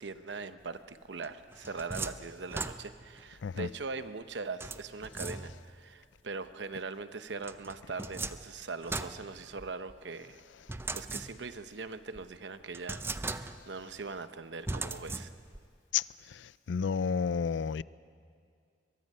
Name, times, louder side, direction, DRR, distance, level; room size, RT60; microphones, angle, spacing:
voice 1, 0.0-10.4 10.9-15.3, right 4 dB, 80° right, 0.8 m, -41 dB
sound 1, 1.2-3.2 4.6-5.8 7.4-9.9 10.7-11.7 12.1-12.2 12.7-13.8 14.7-15.7, right 3 dB, 15° right, 0.4 m, -39 dB
voice 2, 16.7-17.8, left 6 dB, 85° left, 0.4 m, -30 dB
23.0 x 22.0 x 5.5 m
head